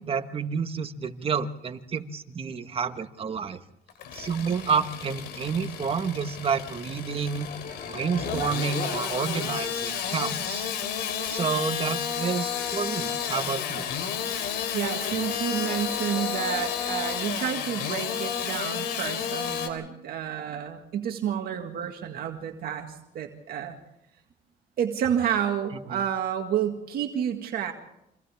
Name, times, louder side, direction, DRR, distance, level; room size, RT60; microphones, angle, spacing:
voice 1, 0.0-3.6 4.1-7.5 7.8-10.7 11.2-13.9 25.9-26.0, right 6 dB, 35° right, 8 dB, 1.5 m, -29 dB
Engine starting / Sawing, 3.9-19.7, left 8 dB, 80° left, 3.2 m, -32 dB
sound 1, 7.4-17.5, left 6 dB, 55° left, 3.2 m, -41 dB
voice 2, 14.3-23.8 24.8-27.7, right 9 dB, 65° right, 3 dB, 1.9 m, -30 dB
29.0 x 25.5 x 3.6 m, 0.85 s
cardioid pair, 110°, 17 cm